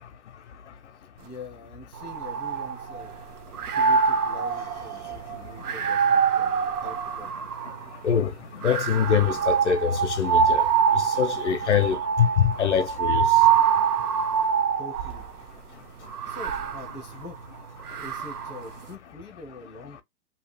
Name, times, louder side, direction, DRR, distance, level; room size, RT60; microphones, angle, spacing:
voice 1, 1.2-3.1 3.7-7.3 14.8-15.2 16.3-20.0, left 2 dB, ahead, 0.4 m, -44 dB
sound 1, 2.0-3.2 3.5-7.9 8.6-15.3 16.1-18.7, right 7 dB, 75° right, 0.7 m, -25 dB
voice 2, 8.6-10.6 11.2-12.3 12.6-13.2, left 7 dB, 50° left, 0.6 m, -23 dB
2.8 x 2.4 x 3.2 m
hypercardioid pair, 150°, 46 cm